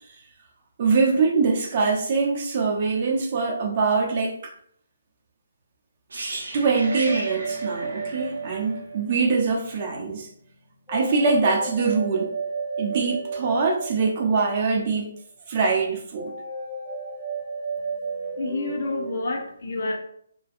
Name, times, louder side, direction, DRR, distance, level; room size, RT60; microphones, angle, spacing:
voice 1, 0.8-4.5 6.5-10.3 10.9-12.3 12.8-15.1 15.5-16.3, right 4 dB, 35° right, 0.6 m, -23 dB
sound 1, 6.1-10.0 10.2-10.4, right 2 dB, 75° right, 0.7 m, -36 dB
sound 2, 6.8-9.5 10.9-14.8 16.2-19.2, right 4 dB, 10° left, 1.4 m, -33 dB
voice 2, 18.4-20.0, left 2 dB, 55° left, 0.5 m, -28 dB
2.6 x 2.2 x 2.5 m
hypercardioid pair, 155°, 0 cm